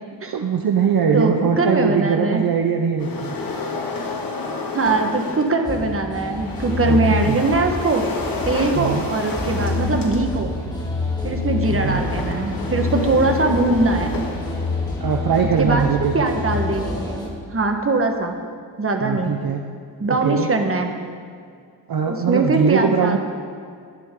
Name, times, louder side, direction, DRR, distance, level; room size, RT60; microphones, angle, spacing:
voice 1, 0.3-3.3 6.8-7.4 8.7-9.0 11.6-12.0 15.0-16.1 19.0-19.6 20.1-20.5 21.9-23.2, right 6 dB, 55° right, 3 dB, 0.9 m, -21 dB
voice 2, 1.1-2.4 4.7-8.1 8.5-10.5 11.2-14.2 15.6-18.4 18.8-19.3 20.0-20.9 22.1-23.2, right 3 dB, 30° right, 4 dB, 1.4 m, -21 dB
sound 1, 3.0-5.6 6.3-15.1, left 3 dB, 50° left, 2.0 m, -31 dB
sound 2, 5.6-17.3, left 3 dB, 10° left, 2.2 m, -27 dB
21.0 x 11.0 x 3.8 m, 2.2 s
wide cardioid pair, 115°, 43 cm